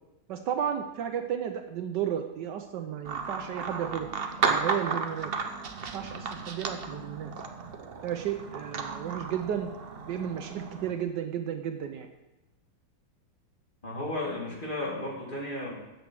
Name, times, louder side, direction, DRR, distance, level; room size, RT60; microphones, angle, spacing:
voice 1, 0.3-4.1 4.4-5.3 5.9-7.3 8.0-9.7 10.1-12.1, right 9 dB, 75° right, 6 dB, 1.3 m, -33 dB
sound 1, 3.0-10.9, right 5 dB, 45° right, 0.7 m, -34 dB
voice 2, 13.8-15.7, left 1 dB, 25° left, -3 dB, 2.8 m, -34 dB
13.5 x 8.0 x 4.7 m, 1.0 s
omnidirectional pair, 2.0 m